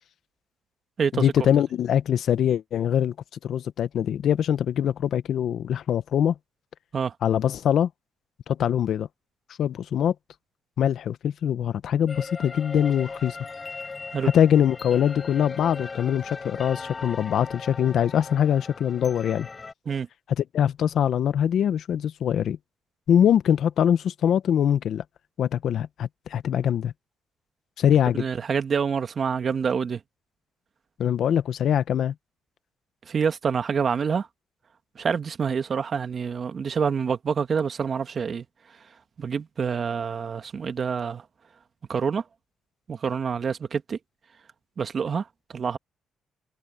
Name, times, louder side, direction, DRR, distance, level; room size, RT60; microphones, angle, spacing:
voice 1, 1.1-3.1 3.4-6.4 7.2-7.9 8.5-9.1 9.6-10.1 10.8-13.4 14.3-19.5 20.4-22.6 23.1-25.0 25.4-26.9 27.8-28.3 31.0-32.1, left 9 dB, 65° left, 1.1 m, -23 dB
sound 1, 12.1-19.7, left 4 dB, 30° left, 4.8 m, -38 dB
voice 2, 28.2-30.0 33.1-34.3 35.0-38.5 39.2-41.2 41.9-42.2 42.9-44.0 44.8-45.3 45.5-45.8, right 6 dB, 45° right, 1.9 m, -27 dB
cardioid pair, 90°, 0 cm